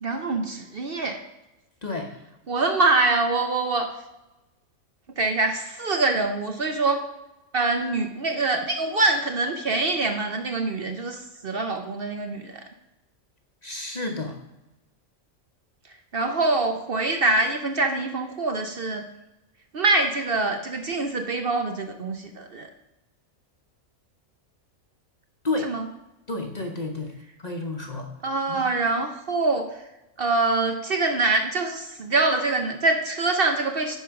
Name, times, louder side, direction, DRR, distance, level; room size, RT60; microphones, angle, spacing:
voice 1, 0.0-1.2 2.5-3.9 5.1-7.1 7.5-12.6 16.1-19.0 19.7-22.7 25.6-25.9 28.2-29.8 30.2-34.0, right 3 dB, 50° right, 5 dB, 0.8 m, -24 dB
voice 2, 13.6-14.3 25.4-25.7 26.3-27.1 27.4-28.1 28.5-28.7, left 2 dB, 35° left, 3 dB, 0.9 m, -30 dB
10.0 x 5.0 x 5.8 m, 0.99 s
omnidirectional pair, 1.4 m